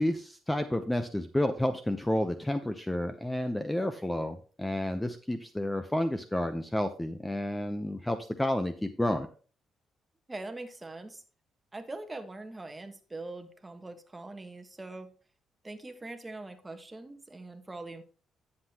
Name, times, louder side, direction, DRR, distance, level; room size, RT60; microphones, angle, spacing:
voice 1, 0.0-9.3, left 1 dB, 10° left, 9 dB, 0.7 m, -30 dB
voice 2, 10.3-11.2 11.7-15.1 15.6-18.0, right 2 dB, 20° right, 7 dB, 1.3 m, -42 dB
9.7 x 7.5 x 2.9 m, 0.38 s
cardioid pair, 90°, 0 cm